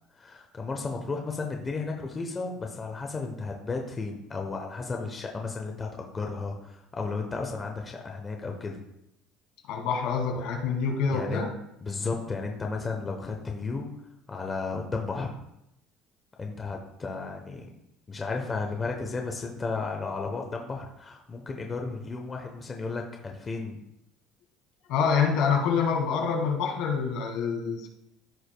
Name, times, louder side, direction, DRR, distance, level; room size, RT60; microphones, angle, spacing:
voice 1, 0.2-8.8 11.1-11.5 11.8-13.9 14.3-15.3 16.4-17.7 18.1-23.8, left 4 dB, 20° left, 2 dB, 0.8 m, -33 dB
voice 2, 9.7-11.5 24.9-27.9, left 6 dB, 75° left, 1 dB, 1.9 m, -26 dB
14.5 x 4.9 x 2.2 m, 0.81 s
cardioid pair, 155°, 0 cm